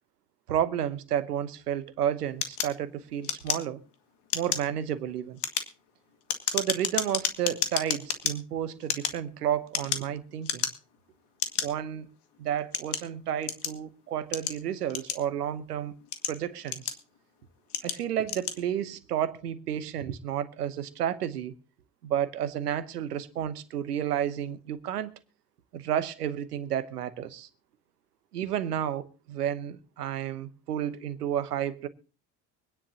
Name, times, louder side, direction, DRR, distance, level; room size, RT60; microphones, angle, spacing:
voice 1, 0.5-3.8 4.3-5.4 6.5-10.7 11.6-12.1 12.4-15.9 16.3-17.0 17.8-21.5 22.0-25.1 25.7-27.5 28.3-31.9, right 10 dB, 90° right, 1.1 m, -31 dB
sound 1, 2.4-3.9 4.3-4.7 5.3-8.3 8.8-10.1 10.4-11.0 11.4-11.7 12.3-13.8 14.3-15.5 16.0-17.2 17.7-18.0 18.2-18.6, left 9 dB, 60° left, 2.0 m, -31 dB
24.5 x 10.0 x 2.8 m
hypercardioid pair, 60°, 45 cm